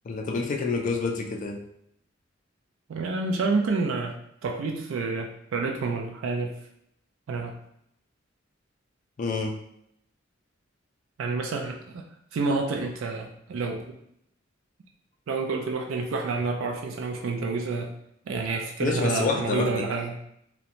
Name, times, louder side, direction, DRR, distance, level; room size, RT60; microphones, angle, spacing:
voice 1, 0.0-1.6 9.2-9.5 18.8-19.8, left 4 dB, 40° left, 3 dB, 0.3 m, -27 dB
voice 2, 2.9-6.6 7.3-7.5 11.2-12.0 12.3-14.0 15.3-17.9 18.3-20.2, right 3 dB, 90° right, 2 dB, 0.3 m, -29 dB
2.4 x 2.1 x 2.8 m, 0.74 s
head